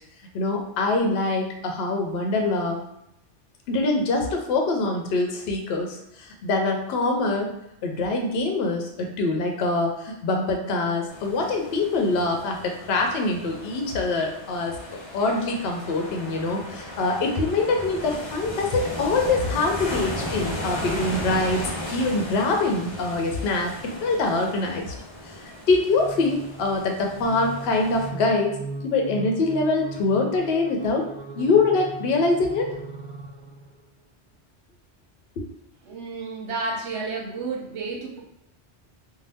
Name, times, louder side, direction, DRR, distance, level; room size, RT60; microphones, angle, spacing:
voice 1, 0.3-2.8 3.7-7.5 7.8-14.8 15.1-24.9 25.2-28.6 28.8-31.0 31.3-32.7 35.4-35.5, left 3 dB, 65° left, 2 dB, 0.7 m, -24 dB
sound 1, 11.1-28.1, left 1 dB, 35° left, 0.5 m, -35 dB
sound 2, 25.9-33.8, right 3 dB, 60° right, 0.5 m, -39 dB
voice 2, 35.9-38.2, right 3 dB, 75° right, -1 dB, 1.0 m, -31 dB
2.6 x 2.1 x 3.4 m, 0.83 s
omnidirectional pair, 1.2 m